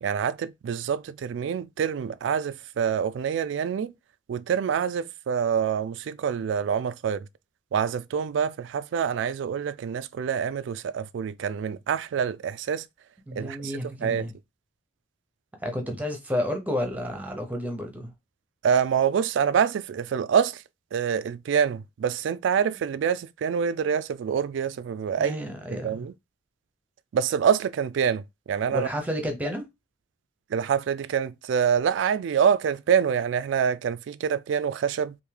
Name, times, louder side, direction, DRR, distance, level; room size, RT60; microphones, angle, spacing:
voice 1, 0.0-3.9 4.3-7.3 7.7-12.9 13.4-13.7 14.0-14.3 18.6-20.6 20.9-25.4 25.8-26.1 27.1-28.9 30.5-35.2, right 7 dB, 75° right, 0.3 m, -26 dB
voice 2, 13.3-14.3 15.6-18.1 25.2-26.1 28.7-29.7, equal, 10° right, 0.7 m, -31 dB
3.5 x 2.6 x 3.2 m
head